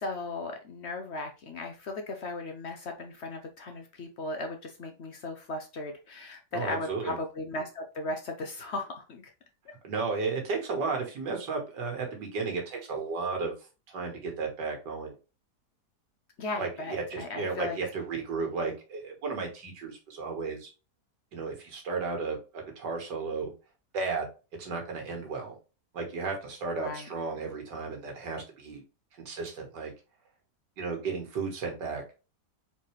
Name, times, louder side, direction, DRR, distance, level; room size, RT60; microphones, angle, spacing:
voice 1, 0.0-9.3 16.4-17.8 26.8-27.1, left 2 dB, 60° left, 4 dB, 0.7 m, -37 dB
voice 2, 6.5-7.2 9.8-13.6 13.9-15.1 16.6-20.7 21.3-23.5 23.9-24.3 24.6-25.6 25.9-28.8 29.3-29.9 30.8-32.0, right 4 dB, 85° right, 2 dB, 2.0 m, -34 dB
4.1 x 4.0 x 3.2 m, 0.31 s
omnidirectional pair, 1.8 m